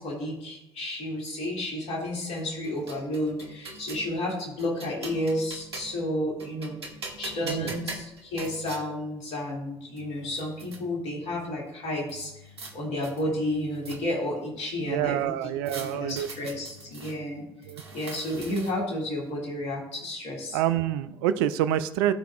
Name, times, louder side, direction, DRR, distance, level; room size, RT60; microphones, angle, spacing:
voice 1, 0.0-6.8 7.2-17.4 17.9-20.6, left 1 dB, 60° left, -2 dB, 2.4 m, -32 dB
sound 1, 2.4-4.1 4.6-6.1 6.4-8.8 9.6-9.7 10.0-10.8 12.1-12.7 13.0-14.3 15.7-17.2 17.6-18.9, right 3 dB, 90° right, 0.8 m, -42 dB
voice 2, 7.4-7.8 14.8-16.5 17.7-17.8 20.5-22.1, right 11 dB, 70° right, 12 dB, 0.4 m, -27 dB
13.0 x 4.5 x 2.4 m, 0.88 s
figure-of-eight pair, 55°, 13 cm